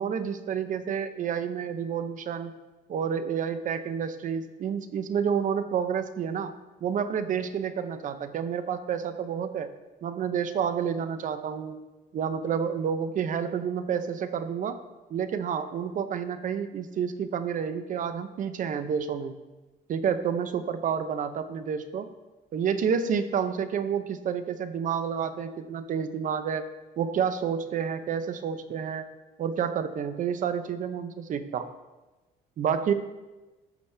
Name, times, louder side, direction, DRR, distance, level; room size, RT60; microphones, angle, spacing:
voice 1, 0.0-2.5 2.9-6.5 6.8-9.7 10.0-11.8 12.1-14.8 15.1-19.4 19.9-22.1 22.5-26.7 27.0-29.1 29.4-31.7 32.6-32.9, right 7 dB, 50° right, 11 dB, 0.7 m, -29 dB
13.0 x 6.0 x 3.4 m, 1.1 s
cardioid pair, 110°, 17 cm